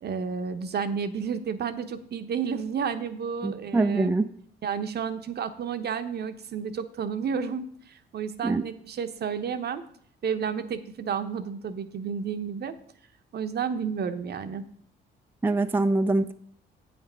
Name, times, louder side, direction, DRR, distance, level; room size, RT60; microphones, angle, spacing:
voice 1, 0.0-4.1 4.6-9.8 10.2-12.7 13.3-14.7, right 6 dB, 55° right, 10 dB, 0.8 m, -31 dB
voice 2, 3.4-4.3 8.4-8.6 15.4-16.3, right 2 dB, 10° right, 8 dB, 0.4 m, -24 dB
8.5 x 6.0 x 5.5 m, 0.64 s
cardioid pair, 90°, 20 cm